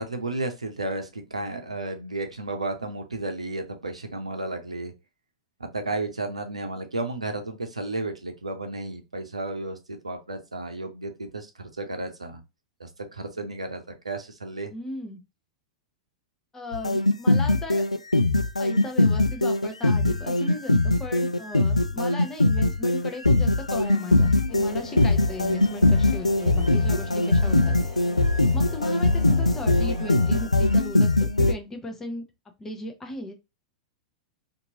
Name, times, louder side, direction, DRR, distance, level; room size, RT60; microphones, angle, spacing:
voice 1, 0.0-4.9 5.6-12.4 12.8-14.7, right 2 dB, 80° right, 5 dB, 0.6 m, -33 dB
voice 2, 14.7-15.2 16.5-17.8 18.6-27.8 28.5-32.3 32.6-33.3, left 2 dB, 15° left, 4 dB, 0.8 m, -37 dB
sound 1, 16.7-31.5, left 2 dB, 85° left, 0.3 m, -21 dB
sound 2, 24.5-30.8, left 4 dB, 35° left, 1.5 m, -44 dB
2.8 x 2.6 x 2.7 m, 0.24 s
figure-of-eight pair, 95°, 3 cm